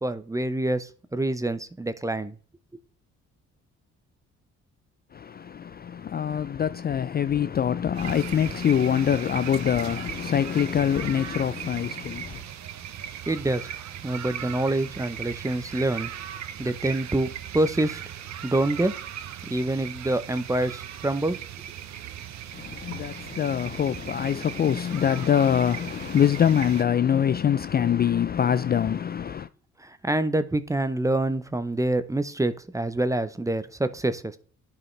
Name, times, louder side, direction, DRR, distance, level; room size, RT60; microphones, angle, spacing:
voice 1, 0.0-2.3 13.3-13.7 14.0-16.1 16.6-18.0 18.4-18.9 19.5-21.4 29.8-34.4, right 1 dB, 10° right, 0.7 m, -26 dB
voice 2, 5.1-12.4 22.5-29.5, left 9 dB, 35° left, 0.4 m, -24 dB
sound 1, 7.9-26.8, right 10 dB, 65° right, 0.9 m, -38 dB
11.0 x 4.8 x 3.3 m
cardioid pair, 90°, 30 cm